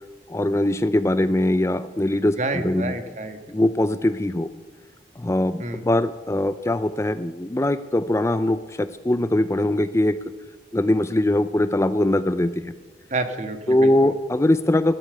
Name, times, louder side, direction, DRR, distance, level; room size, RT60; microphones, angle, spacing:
voice 1, 0.3-2.9 3.5-4.5 5.2-10.2 10.7-12.7 13.7-15.0, left 1 dB, 15° left, 12 dB, 0.5 m, -21 dB
voice 2, 2.4-3.4 5.6-5.8 13.1-14.1, right 2 dB, 40° right, 7 dB, 1.6 m, -29 dB
16.5 x 13.0 x 6.7 m, 1.3 s
head